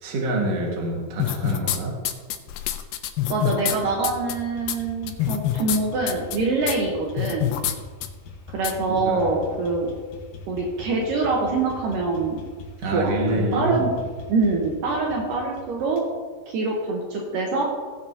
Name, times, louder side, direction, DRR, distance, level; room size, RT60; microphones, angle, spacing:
voice 1, 0.0-2.0 8.9-9.5 12.8-13.9, right 1 dB, 50° right, -1 dB, 2.6 m, -26 dB
sound 1, 1.2-1.8 2.0-3.8 4.0-4.3 4.7-4.8 5.1-5.8 6.1-6.4 6.7-6.8 7.2-7.7 8.0-8.1 8.6-8.7, left 12 dB, 85° left, 2.5 m, -25 dB
voice 2, 3.3-7.5 8.5-9.9 10.5-12.4 12.9-13.9 14.3-16.0 16.5-17.6, right 3 dB, 70° right, -2 dB, 2.7 m, -24 dB
sound 2, 3.8-16.1, left 3 dB, 60° left, 2.3 m, -42 dB
16.5 x 8.4 x 2.9 m, 1.5 s
omnidirectional pair, 4.2 m